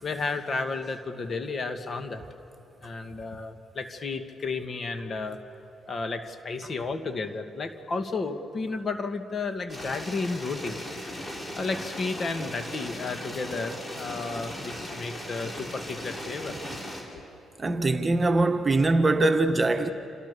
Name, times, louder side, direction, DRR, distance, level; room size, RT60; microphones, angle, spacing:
voice 1, 0.0-2.2 2.8-5.4 5.9-10.8 11.1-16.6 17.1-17.2, left 3 dB, 40° left, 2.0 m, -32 dB
sound 1, 9.7-17.0, left 1 dB, 25° left, 5.9 m, -38 dB
voice 2, 17.6-19.9, right 2 dB, 25° right, 1.5 m, -22 dB
28.0 x 27.0 x 6.9 m
cardioid pair, 90°, 0 cm